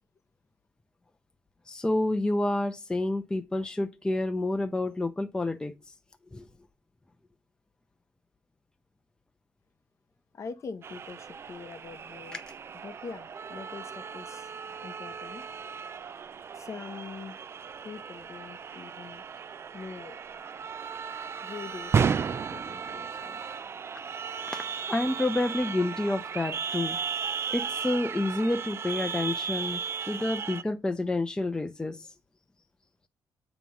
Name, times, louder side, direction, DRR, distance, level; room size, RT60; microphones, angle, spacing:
voice 1, 1.7-5.7 6.3-6.5 12.3-12.4 24.5-27.0 27.5-32.1, left 2 dB, 10° left, 0.6 m, -29 dB
voice 2, 10.3-12.4 12.8-14.5 14.8-15.4 16.5-17.4 17.8-19.2 19.7-20.2 21.4-23.4 30.0-30.5, left 5 dB, 40° left, 0.8 m, -43 dB
sound 1, 10.8-30.6, right 6 dB, 35° right, 0.3 m, -35 dB
8.3 x 3.0 x 5.4 m
cardioid pair, 115°, 8 cm